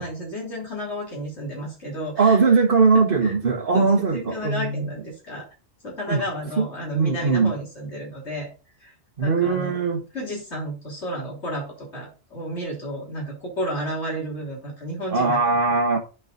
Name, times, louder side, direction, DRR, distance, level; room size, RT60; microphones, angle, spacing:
voice 1, 0.0-2.4 3.2-3.3 3.7-5.5 5.8-8.5 8.8-8.9 9.2-9.7 10.1-15.4, equal, 70° left, 3.6 m, -32 dB
voice 2, 2.2-4.9 6.1-6.2 6.6-6.7 6.9-7.5 9.2-10.0 15.1-16.0, right 4 dB, 50° right, 1.2 m, -20 dB
8.2 x 4.8 x 3.8 m
omnidirectional pair, 1.2 m